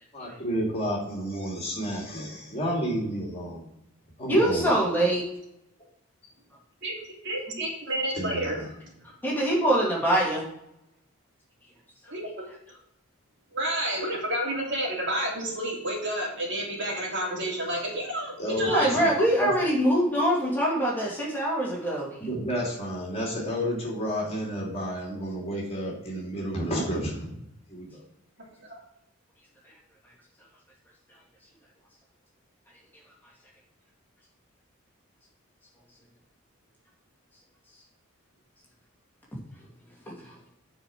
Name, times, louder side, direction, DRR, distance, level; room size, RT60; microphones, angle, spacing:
voice 1, 0.1-3.7 4.2-4.7 8.1-8.7 18.4-19.1 19.4-19.5 22.2-27.3 27.7-28.0, equal, 25° left, -2 dB, 2.8 m, -31 dB
voice 2, 4.3-5.2 9.2-10.4 18.6-22.1 40.1-40.3, right 1 dB, 10° left, -4 dB, 2.4 m, -24 dB
voice 3, 7.2-8.6 12.1-12.3 13.5-18.9 28.6-28.8, right 1 dB, 55° right, -2 dB, 3.0 m, -30 dB
9.4 x 5.1 x 6.1 m, 0.82 s
head